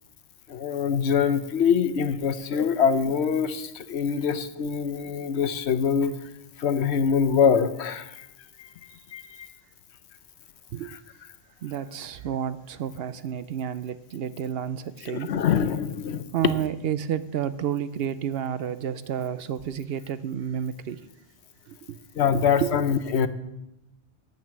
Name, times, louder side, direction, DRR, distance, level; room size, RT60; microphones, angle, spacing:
voice 1, 0.5-6.2 6.6-8.3 8.6-8.7 9.1-9.5 15.1-16.2 22.2-23.3, left 7 dB, 75° left, 10 dB, 1.0 m, -24 dB
voice 2, 11.6-15.4 16.3-21.1 21.7-22.0 22.3-22.8, right 9 dB, 65° right, 14 dB, 0.8 m, -30 dB
9.0 x 8.7 x 7.6 m, 0.92 s
omnidirectional pair, 1.1 m